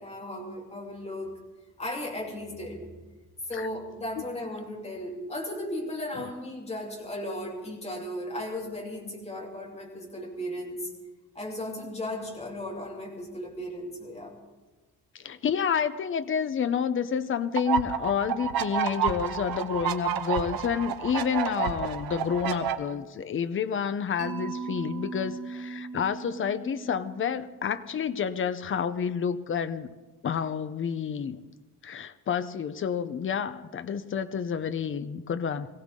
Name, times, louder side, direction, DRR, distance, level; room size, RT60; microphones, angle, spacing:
voice 1, 0.0-1.4 1.8-2.9 3.5-10.9 11.3-14.4, left 1 dB, 15° left, -2 dB, 3.2 m, -36 dB
voice 2, 15.1-29.9 30.2-31.4 31.8-35.7, left 7 dB, 35° left, 12 dB, 0.7 m, -29 dB
sound 1, 17.6-22.7, right 8 dB, 75° right, 1.1 m, -30 dB
Mallet percussion, 24.2-28.2, right 4 dB, 60° right, 2.3 m, -39 dB
22.0 x 16.5 x 3.7 m, 1.3 s
wide cardioid pair, 175°, 36 cm